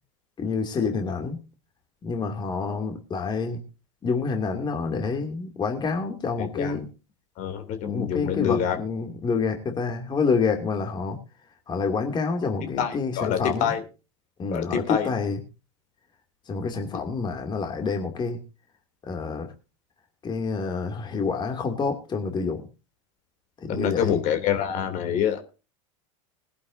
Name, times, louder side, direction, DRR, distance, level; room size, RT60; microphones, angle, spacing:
voice 1, 0.4-1.4 2.0-3.6 4.0-6.9 7.8-11.2 11.7-13.7 14.4-15.4 16.5-18.4 19.0-19.5 20.2-22.6 23.6-24.2, left 4 dB, 25° left, 4 dB, 2.6 m, -28 dB
voice 2, 6.4-6.7 7.4-8.8 12.8-13.8 14.5-15.1 23.7-25.4, left 8 dB, 50° left, 7 dB, 2.9 m, -26 dB
21.5 x 11.0 x 2.7 m, 0.32 s
hypercardioid pair, 100°, 17 cm